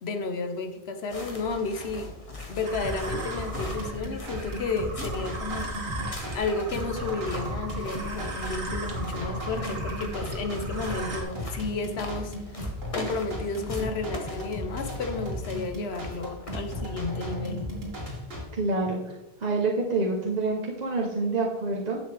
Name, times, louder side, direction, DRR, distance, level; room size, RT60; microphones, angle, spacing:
voice 1, 0.0-2.1 2.5-5.9 6.3-12.3 12.9-17.7, left 3 dB, 70° left, 7 dB, 1.1 m, -32 dB
sound 1, 1.1-17.1, left 2 dB, 30° left, 1.5 m, -41 dB
sound 2, 2.6-11.2, right 3 dB, 90° right, 1.8 m, -38 dB
sound 3, 2.8-18.4, equal, 65° right, 2.3 m, -36 dB
voice 2, 18.5-19.1 19.4-22.0, right 3 dB, 40° right, -1 dB, 1.0 m, -27 dB
10.5 x 7.2 x 3.4 m, 0.99 s
omnidirectional pair, 1.1 m